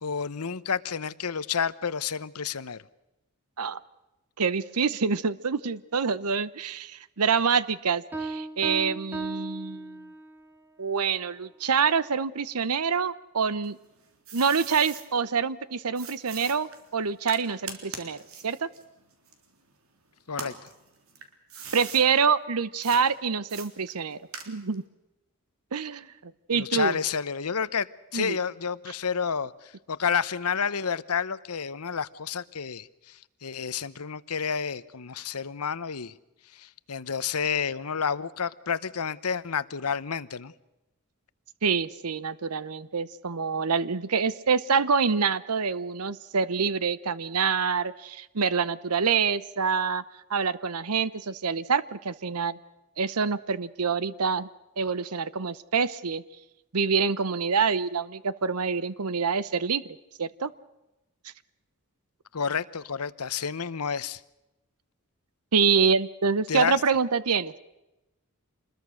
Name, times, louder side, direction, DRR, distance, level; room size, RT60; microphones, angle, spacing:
voice 1, 0.0-2.8 20.3-20.5 26.5-36.1 36.5-40.5 62.3-64.2 66.5-66.8, left 6 dB, 85° left, 16 dB, 0.9 m, -30 dB
voice 2, 4.4-10.0 10.8-13.8 14.3-18.2 18.4-18.7 21.7-24.2 24.5-24.8 25.7-27.0 28.1-28.4 41.6-50.0 50.3-52.6 53.0-54.5 54.8-56.2 56.7-59.8 60.2-60.5 65.5-67.5, right 5 dB, 90° right, 17 dB, 0.9 m, -26 dB
Piano, 8.1-10.5, right 2 dB, 10° right, 1.9 m, -36 dB
sound 1, 13.6-15.1 16.0-19.9 20.3-22.1 22.8-23.0 23.5-24.8, right 5 dB, 65° right, 3.5 m, -42 dB
27.0 x 21.5 x 6.4 m, 0.98 s
head